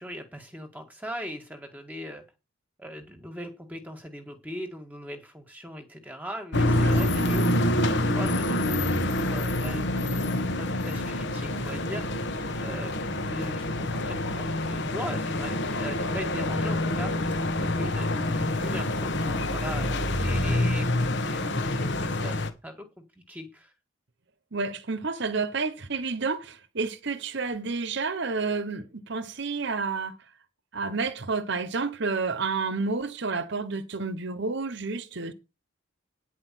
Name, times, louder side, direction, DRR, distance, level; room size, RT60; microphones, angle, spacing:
voice 1, 0.0-2.2 2.8-7.5 7.9-9.8 10.5-12.2 12.6-20.9 21.2-23.7, equal, 10° right, 1.8 m, -40 dB
sound 1, 6.5-22.5, left 1 dB, 55° left, 1.3 m, -27 dB
voice 2, 6.8-7.3 17.8-17.9 24.5-30.2 30.7-35.3, right 4 dB, 55° right, 1.0 m, -30 dB
10.0 x 4.8 x 7.6 m
head